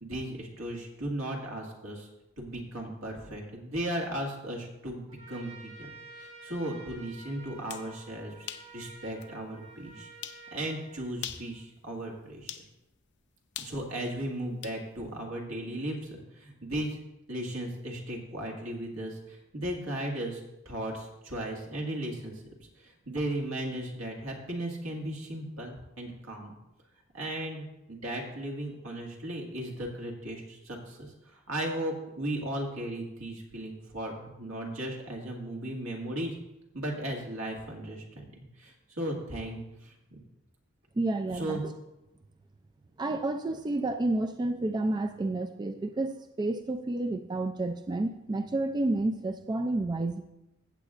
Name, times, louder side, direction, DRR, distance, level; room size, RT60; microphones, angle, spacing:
voice 1, 0.0-2.1 2.4-5.9 6.1-8.5 8.7-10.1 10.5-12.6 13.6-17.0 17.3-22.3 22.8-26.5 27.1-36.4 36.7-40.2 41.3-41.6, right 1 dB, 80° right, 0 dB, 2.0 m, -36 dB
Trumpet, 5.1-11.6, right 3 dB, 55° right, 2.1 m, -50 dB
sound 1, 7.5-7.9 8.5-8.7 9.2-9.3 10.2-10.4 11.1-11.5 12.5-12.7 13.5-14.8, left 10 dB, 60° left, 0.6 m, -41 dB
voice 2, 41.0-41.6 43.0-50.2, right 2 dB, 20° right, 7 dB, 0.3 m, -30 dB
15.0 x 8.0 x 2.5 m, 0.90 s
head